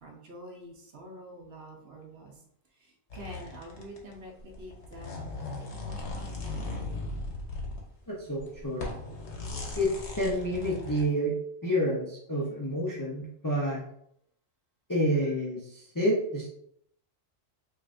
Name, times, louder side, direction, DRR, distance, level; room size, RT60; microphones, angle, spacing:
voice 1, 0.0-2.4 2.8-6.7, equal, 65° right, 0 dB, 1.0 m, -47 dB
sound 1, 3.1-4.1 4.4-7.8 8.3-11.1, left 2 dB, 80° left, 1.2 m, -38 dB
voice 2, 8.1-9.0 9.8-9.9 10.2-11.3 11.6-13.8 14.9-16.5, equal, 25° left, -4 dB, 0.5 m, -29 dB
5.0 x 2.4 x 2.5 m, 0.72 s
omnidirectional pair, 1.2 m